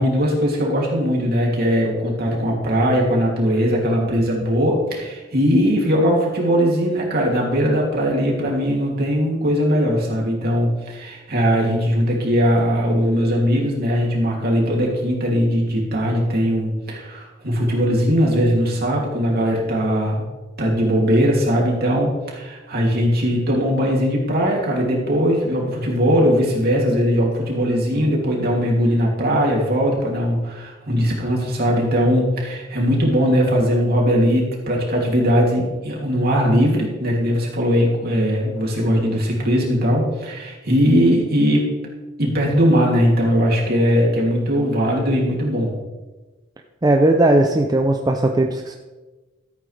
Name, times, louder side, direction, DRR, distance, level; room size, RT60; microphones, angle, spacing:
voice 1, 0.0-20.2 20.6-41.7 42.2-45.7, equal, 55° right, -2 dB, 2.8 m, -19 dB
voice 2, 46.8-48.8, right 1 dB, 20° right, 3 dB, 0.6 m, -17 dB
14.0 x 8.7 x 3.4 m, 1.2 s
head